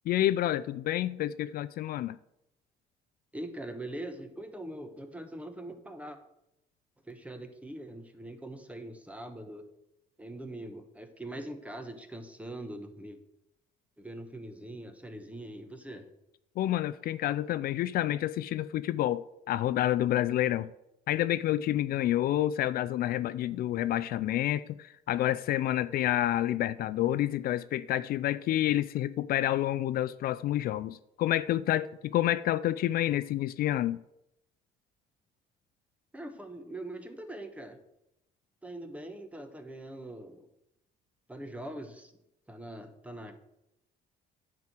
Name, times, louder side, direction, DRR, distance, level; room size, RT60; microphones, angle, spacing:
voice 1, 0.1-2.2 16.6-20.7 21.1-34.0, left 13 dB, 60° left, 0.4 m, -29 dB
voice 2, 3.3-6.2 7.1-9.6 10.2-13.2 14.0-16.1 36.1-37.8 38.6-40.5 41.3-42.1 42.5-43.4, right 1 dB, 10° right, 1.1 m, -42 dB
9.4 x 4.6 x 7.3 m
cardioid pair, 110°, 17 cm